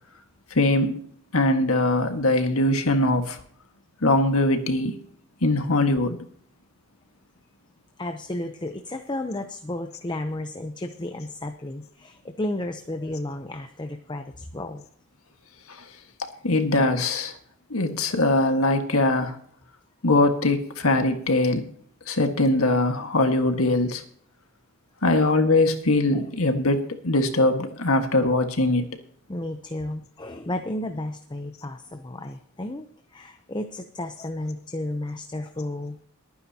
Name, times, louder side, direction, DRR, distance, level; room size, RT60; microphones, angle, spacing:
voice 1, 0.5-1.0 1.3-3.4 4.0-4.9 5.4-6.2 15.8-15.9 16.2-17.3 17.7-19.4 20.0-21.7 22.1-24.0 25.0-29.0, left 2 dB, 80° left, 6 dB, 1.7 m, -22 dB
voice 2, 8.0-14.8 25.0-25.3 26.1-26.2 29.3-36.0, left 1 dB, 20° left, 6 dB, 0.7 m, -33 dB
22.5 x 9.5 x 2.9 m, 0.62 s
head